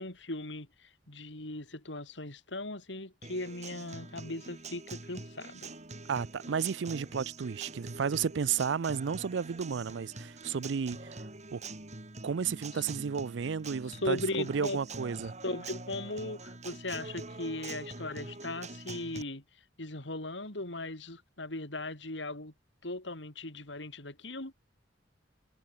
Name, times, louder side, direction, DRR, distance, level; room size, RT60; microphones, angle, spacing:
voice 1, 0.0-5.7 12.7-12.8 13.9-14.8 15.4-19.4 19.8-22.5 22.8-24.5, left 2 dB, 75° left, 4.3 m, -38 dB
Acoustic guitar, 3.2-19.2, right 3 dB, 40° right, 5.5 m, -45 dB
voice 2, 6.1-11.0 11.5-11.6 12.2-15.3, right 6 dB, 75° right, 0.5 m, -32 dB
head